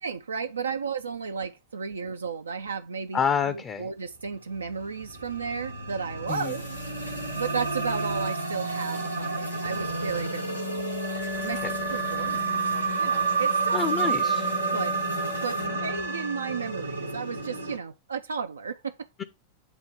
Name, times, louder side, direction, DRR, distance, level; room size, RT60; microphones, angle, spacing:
voice 1, 0.0-6.7 7.3-10.8 11.4-13.8 14.4-15.0 15.4-19.1, right 6 dB, 75° right, 0.3 m, -34 dB
voice 2, 3.1-3.9 6.3-6.5 13.7-14.5, left 7 dB, 25° left, 0.5 m, -27 dB
sound 1, 4.7-17.8, right 3 dB, 90° right, 1.1 m, -30 dB
sound 2, 6.3-15.7, left 1 dB, 80° left, 4.8 m, -47 dB
8.0 x 2.8 x 5.6 m
figure-of-eight pair, 90°, 0 cm